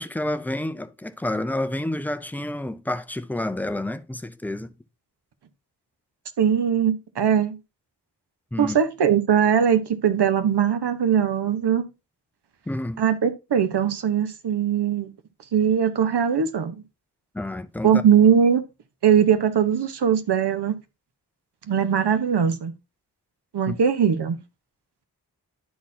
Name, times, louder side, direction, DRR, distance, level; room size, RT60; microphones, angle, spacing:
voice 1, 0.0-4.7 8.5-8.8 12.7-13.0 17.3-18.0 23.7-23.8, left 1 dB, 5° left, 0.4 m, -29 dB
voice 2, 6.4-7.6 8.6-11.8 13.0-15.1 15.5-16.7 17.8-18.6 19.0-20.8 21.7-22.7 23.5-24.4, right 8 dB, 85° right, 1.1 m, -20 dB
11.5 x 4.3 x 2.7 m
wide cardioid pair, 170°, 40 cm